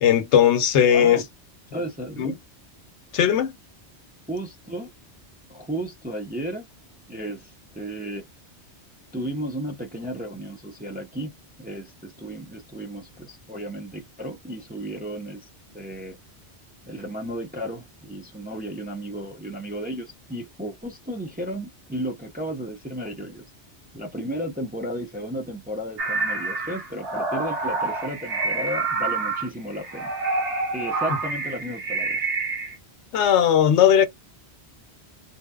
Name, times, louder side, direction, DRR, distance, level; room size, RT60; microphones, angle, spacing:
voice 1, 0.0-1.2 2.2-2.3 3.1-3.5 33.1-34.1, left 9 dB, 90° left, 0.9 m, -18 dB
voice 2, 0.9-1.2 1.7-2.4 4.3-4.9 5.5-6.7 7.1-8.3 9.1-11.3 11.6-15.5 15.7-16.2 16.9-23.4 23.9-30.1 30.7-32.3, equal, 15° right, 0.3 m, -34 dB
sound 1, 26.0-32.7, right 3 dB, 65° right, 0.9 m, -27 dB
2.7 x 2.1 x 2.3 m
omnidirectional pair, 1.1 m